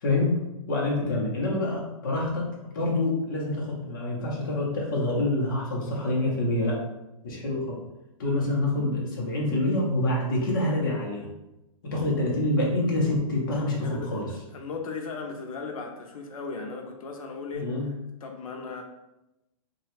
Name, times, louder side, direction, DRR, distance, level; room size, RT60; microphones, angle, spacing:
voice 1, 0.0-6.8 7.2-7.8 8.2-11.3 11.8-14.3 17.5-17.9, left 2 dB, 35° left, -3 dB, 0.7 m, -26 dB
voice 2, 13.8-14.2 14.5-17.9 18.2-18.8, left 4 dB, 85° left, 3 dB, 0.5 m, -37 dB
3.0 x 2.3 x 3.1 m, 0.95 s
hypercardioid pair, 175°, 18 cm